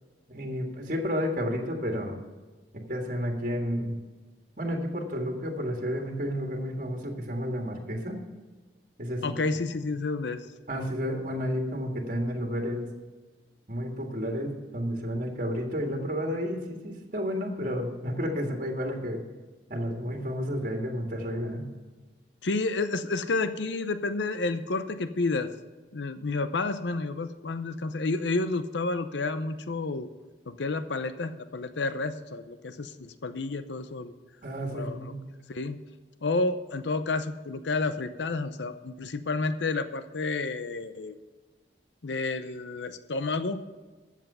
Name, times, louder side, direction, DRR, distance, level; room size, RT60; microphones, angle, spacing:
voice 1, 0.3-2.2 2.7-4.0 4.6-8.2 9.0-9.3 10.7-12.9 13.7-19.2 19.7-21.7 34.4-35.2, equal, 50° right, 2 dB, 1.8 m, -31 dB
voice 2, 9.2-10.4 22.4-25.5 25.9-30.1 30.5-34.1 34.7-35.1 35.5-35.8 36.2-41.2 42.0-43.8, left 3 dB, 85° left, 11 dB, 0.7 m, -30 dB
13.5 x 7.5 x 5.5 m, 1.3 s
head